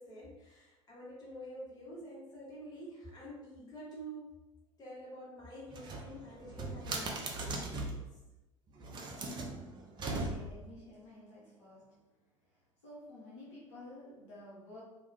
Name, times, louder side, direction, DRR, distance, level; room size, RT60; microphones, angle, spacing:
voice 1, 0.0-4.3 4.8-8.0, right 1 dB, 20° left, -7 dB, 1.3 m, -48 dB
sound 1, 5.7-8.1 8.8-10.7, right 2 dB, 25° right, 0.5 m, -39 dB
voice 2, 10.2-12.1 12.8-14.8, left 1 dB, 60° left, -7 dB, 0.8 m, -52 dB
2.4 x 2.2 x 3.2 m, 1.0 s
figure-of-eight pair, 70°, 17 cm